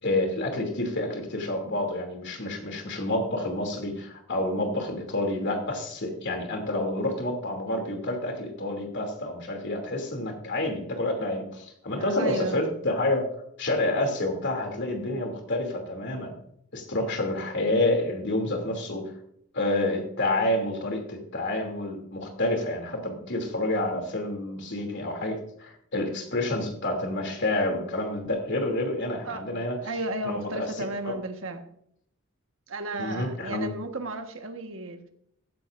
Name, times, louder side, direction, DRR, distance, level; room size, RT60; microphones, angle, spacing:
voice 1, 0.0-13.2 13.6-16.3 16.7-19.1 19.5-29.8 30.2-31.1 33.0-33.7, left 1 dB, 55° left, 3 dB, 2.8 m, -28 dB
voice 2, 12.0-12.6 29.2-29.5 29.8-31.6 32.7-35.1, right 2 dB, 65° right, 6 dB, 1.4 m, -34 dB
15.5 x 12.0 x 2.6 m, 0.71 s
head